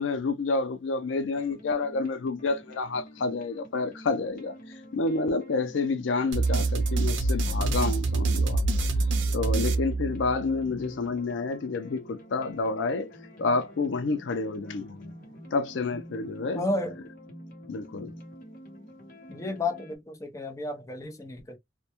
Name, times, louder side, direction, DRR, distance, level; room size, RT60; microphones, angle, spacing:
voice 1, 0.0-8.7 9.0-15.1 15.5-16.6 17.7-18.1, left 3 dB, 85° left, 0.4 m, -29 dB
sound 1, 1.3-20.0, equal, 50° left, 0.9 m, -48 dB
sound 2, 6.3-10.6, right 3 dB, 85° right, 0.5 m, -26 dB
voice 2, 16.5-17.0 19.3-21.6, left 2 dB, 15° left, 0.5 m, -32 dB
2.2 x 2.1 x 2.8 m
head